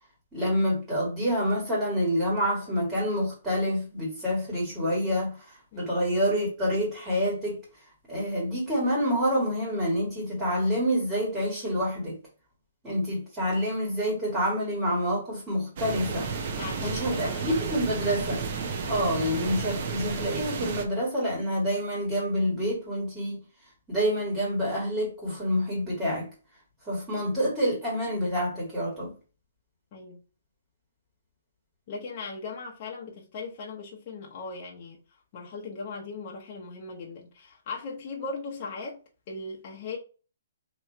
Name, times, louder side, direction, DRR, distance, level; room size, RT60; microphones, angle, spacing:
voice 1, 0.3-7.6 8.1-12.2 12.8-16.3 16.8-18.4 18.9-23.4 23.9-26.3 26.8-29.1, equal, 10° right, 1.6 m, -27 dB
sound 1, 15.8-20.8, right 5 dB, 40° right, 0.7 m, -32 dB
voice 2, 16.6-17.6 29.9-30.2 31.9-35.0 35.3-39.0 39.3-40.0, left 4 dB, 30° left, 0.8 m, -38 dB
3.0 x 2.8 x 4.3 m
hypercardioid pair, 165°, 0 cm